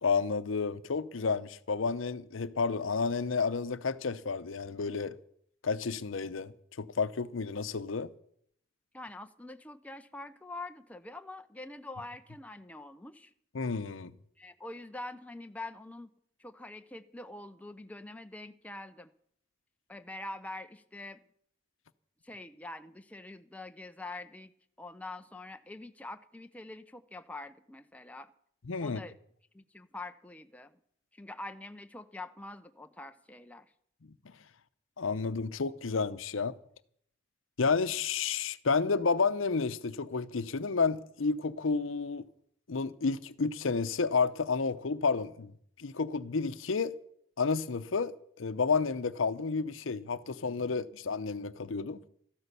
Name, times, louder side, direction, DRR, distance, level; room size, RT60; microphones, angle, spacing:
voice 1, 0.0-5.2 5.6-8.1 13.5-14.1 28.7-29.0 34.3-34.4 35.0-36.5 37.6-42.2 42.7-45.5 45.8-46.9 47.4-52.1, left 4 dB, 85° left, 0.7 m, -31 dB
voice 2, 8.9-13.3 14.4-16.1 16.4-19.1 19.9-21.2 22.2-24.5 24.8-28.3 28.8-29.1 29.5-30.8 31.1-33.7, left 2 dB, 5° left, 0.5 m, -45 dB
13.5 x 12.5 x 6.8 m
head